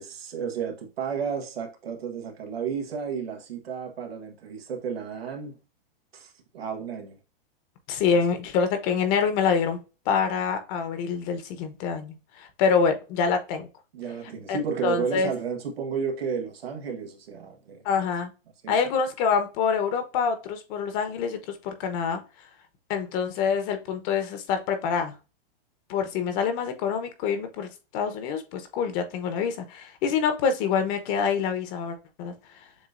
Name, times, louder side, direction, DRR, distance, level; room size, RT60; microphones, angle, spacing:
voice 1, 0.0-5.5 6.1-7.2 8.1-8.2 13.9-17.8 18.6-18.8, right 6 dB, 90° right, 1.5 m, -32 dB
voice 2, 7.9-9.8 10.1-13.7 14.5-15.3 17.8-18.3 18.7-21.4 21.6-22.2 22.9-25.1 25.9-32.3, left 6 dB, 40° left, 1.0 m, -26 dB
7.2 x 2.7 x 2.5 m
hypercardioid pair, 135°, 30 cm